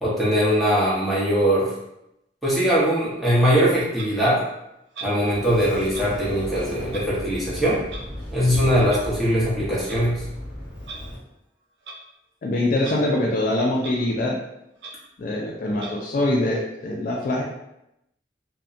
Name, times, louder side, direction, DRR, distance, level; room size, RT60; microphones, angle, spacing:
voice 1, 0.0-1.7 2.4-4.4 5.0-7.8 8.3-10.2, equal, ahead, -8 dB, 0.7 m, -21 dB
Clock, 4.0-4.1 4.9-5.2 5.9-6.1 6.9-7.1 7.9-8.0 8.9-9.0 9.7-10.0 10.8-11.0 11.8-12.0 12.8-13.0 13.3-13.4 13.8-14.0 14.4-14.5 14.8-14.9 15.8-15.9, right 3 dB, 70° right, 0.4 m, -38 dB
Sliding door, 5.3-11.2, equal, 85° right, 1.1 m, -36 dB
voice 2, 12.4-14.4 15.2-17.4, left 1 dB, 50° left, -2 dB, 0.3 m, -23 dB
2.7 x 2.1 x 2.4 m, 0.84 s
head